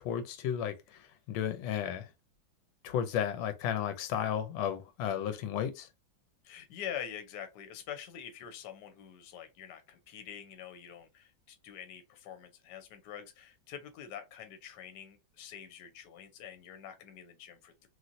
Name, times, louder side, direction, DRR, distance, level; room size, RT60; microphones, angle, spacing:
voice 1, 0.0-2.1 2.8-5.9, left 9 dB, 90° left, 1.4 m, -33 dB
voice 2, 6.4-17.9, left 9 dB, 65° left, 1.2 m, -45 dB
3.1 x 2.8 x 2.5 m
omnidirectional pair, 2.1 m